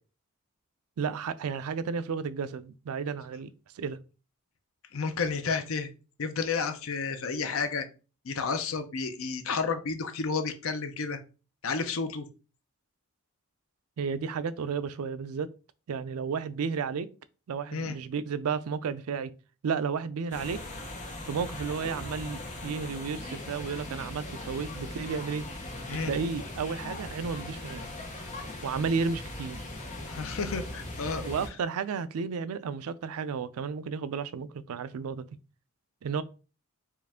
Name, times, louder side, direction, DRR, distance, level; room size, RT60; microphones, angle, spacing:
voice 1, 1.0-4.0 14.0-15.5 15.9-17.1 17.5-19.3 19.6-20.6 21.3-25.5 26.0-27.9 28.6-29.7 31.2-35.3 36.0-36.2, right 5 dB, 90° right, 0.4 m, -32 dB
voice 2, 4.9-5.9 6.2-7.8 8.2-11.2 11.6-12.3 17.7-18.0 25.9-26.1 30.1-31.2, left 5 dB, 70° left, 0.6 m, -31 dB
sound 1, 20.3-31.5, left 1 dB, 35° left, 0.8 m, -39 dB
4.5 x 2.4 x 3.5 m
head